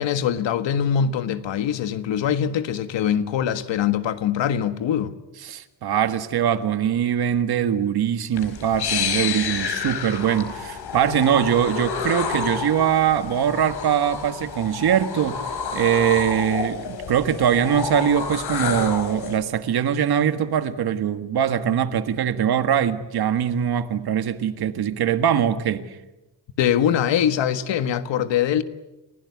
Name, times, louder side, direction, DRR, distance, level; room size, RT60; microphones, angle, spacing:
voice 1, 0.0-5.2 26.6-28.6, left 9 dB, 85° left, 1.6 m, -23 dB
voice 2, 5.4-15.4 15.7-25.9, right 9 dB, 60° right, 1.6 m, -22 dB
sound 1, 8.4-19.4, left 6 dB, 65° left, 4.2 m, -29 dB
30.0 x 16.5 x 9.7 m
wide cardioid pair, 180°, 43 cm